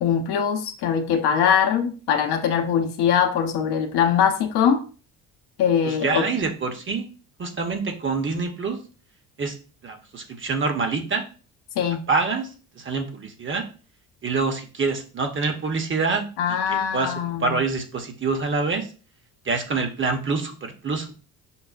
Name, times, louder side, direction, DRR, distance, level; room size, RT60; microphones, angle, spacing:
voice 1, 0.0-4.8 5.6-6.3 11.8-12.0 16.4-17.6, left 8 dB, 65° left, 6 dB, 0.7 m, -22 dB
voice 2, 5.8-7.1 7.4-8.8 9.4-9.6 9.8-11.2 12.1-12.5 12.8-13.6 14.2-16.2 16.7-17.1 17.4-18.9 19.5-21.2, right 4 dB, 30° right, 5 dB, 0.8 m, -26 dB
5.4 x 2.1 x 2.4 m, 0.37 s
hypercardioid pair, 60°, 43 cm